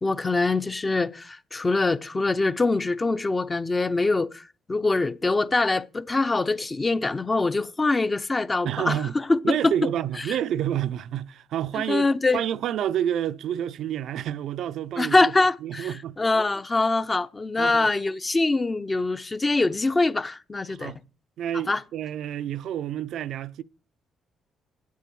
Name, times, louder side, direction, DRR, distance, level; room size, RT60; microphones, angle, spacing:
voice 1, 0.0-4.4 4.7-9.7 11.9-12.4 15.0-20.9 21.7-21.8, left 3 dB, 25° left, 0.7 m, -24 dB
voice 2, 8.6-9.1 9.4-12.1 12.3-15.3 15.6-16.2 17.6-17.9 20.7-21.0 21.4-23.6, right 10 dB, 75° right, 0.5 m, -29 dB
8.4 x 8.4 x 7.6 m
cardioid pair, 90°, 0 cm